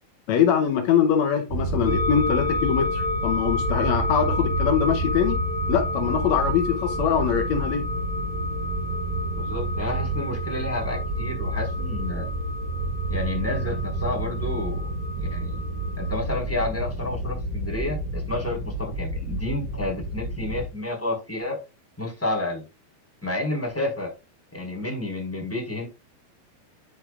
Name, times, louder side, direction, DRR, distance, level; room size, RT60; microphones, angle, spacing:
voice 1, 0.3-5.4 5.7-7.8, left 8 dB, 85° left, 1.5 m, -23 dB
sound 1, 1.5-20.6, right 2 dB, 40° right, 4.2 m, -29 dB
sound 2, 1.9-16.1, left 3 dB, 70° left, 4.0 m, -32 dB
voice 2, 9.3-12.3 13.1-14.9 15.1-15.6 16.0-21.6 22.0-22.6 23.2-24.1 24.5-25.8, left 2 dB, 5° left, 4.2 m, -30 dB
9.9 x 8.6 x 2.4 m
omnidirectional pair, 4.4 m